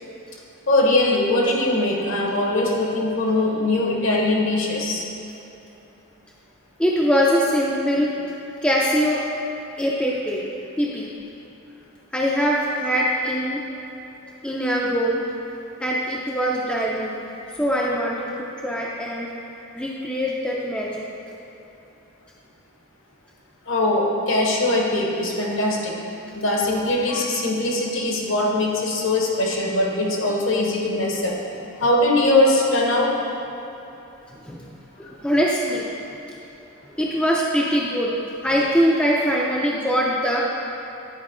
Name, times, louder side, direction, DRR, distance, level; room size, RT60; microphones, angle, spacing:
voice 1, 0.7-5.0 23.7-26.0 26.3-31.4 31.8-33.1, left 2 dB, 60° left, -1 dB, 1.0 m, -21 dB
voice 2, 6.8-8.1 8.6-9.2 9.8-10.4 10.8-11.1 12.1-13.6 14.4-15.2 15.8-17.2 17.6-19.3 19.8-21.1 34.4-34.7 35.0-35.9 37.0-38.1 38.4-40.4, equal, 5° left, -4 dB, 0.4 m, -22 dB
9.5 x 4.5 x 3.7 m, 3.0 s
head